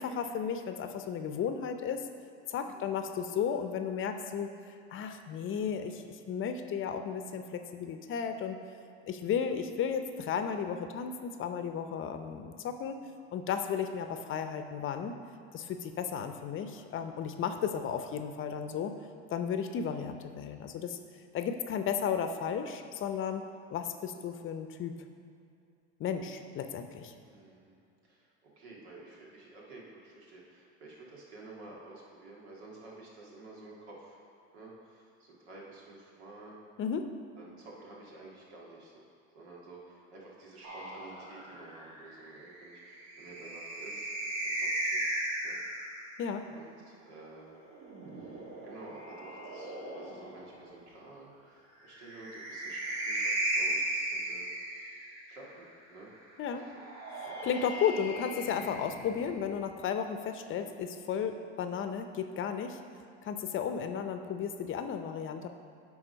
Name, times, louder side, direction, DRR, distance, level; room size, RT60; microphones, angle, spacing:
voice 1, 0.0-2.0 2.5-4.5 4.9-8.6 9.1-13.0 13.3-15.1 15.5-19.0 19.3-21.0 21.3-23.4 23.7-25.0 26.0-27.1 36.8-37.1 46.2-46.5 56.4-56.7 57.1-62.8 63.2-65.5, left 7 dB, 40° left, 7 dB, 0.6 m, -34 dB
voice 2, 2.6-3.0 27.2-27.7 28.0-34.2 34.5-36.6 37.4-39.0 39.3-44.1 44.4-45.6 46.5-47.6 48.2-56.1 56.5-56.9 57.2-57.4, right 2 dB, 90° right, -4 dB, 1.9 m, -51 dB
sound 1, 40.6-46.2 47.5-50.5 51.9-55.4 56.6-59.5, right 1 dB, 60° right, 1.6 m, -37 dB
9.7 x 3.6 x 5.2 m, 2.5 s
supercardioid pair, 100°, 32 cm